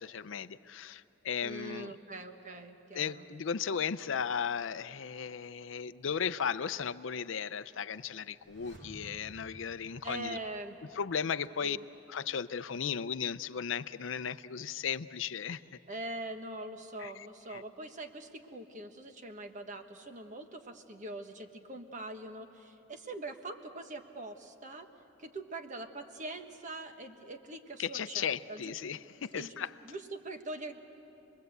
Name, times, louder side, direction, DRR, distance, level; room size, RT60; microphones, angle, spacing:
voice 1, 0.0-2.0 2.9-10.4 10.9-11.8 12.1-15.6 17.0-17.6 27.8-29.7, left 7 dB, 70° left, 13 dB, 0.5 m, -36 dB
voice 2, 1.4-3.2 10.0-10.8 11.6-11.8 15.9-24.9 25.2-28.8 29.3-30.8, right 2 dB, 40° right, 6 dB, 1.3 m, -43 dB
sound 1, 8.3-11.2 11.5-11.6, right 1 dB, 60° right, 2.9 m, -54 dB
27.5 x 21.5 x 8.0 m, 2.9 s
head